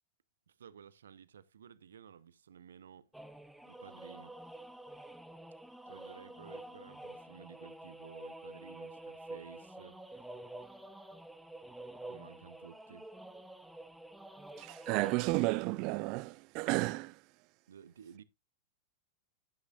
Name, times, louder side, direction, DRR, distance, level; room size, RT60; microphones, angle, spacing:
voice 1, 0.5-3.1 3.7-4.4 5.9-10.0 12.1-13.1 17.7-18.2, right 8 dB, 65° right, 0.8 m, -54 dB
sound 1, 3.1-15.2, right 1 dB, 5° right, 0.9 m, -48 dB
voice 2, 14.6-17.2, right 22 dB, 40° right, 0.5 m, -32 dB
12.0 x 9.5 x 2.4 m
figure-of-eight pair, 90°, 0 cm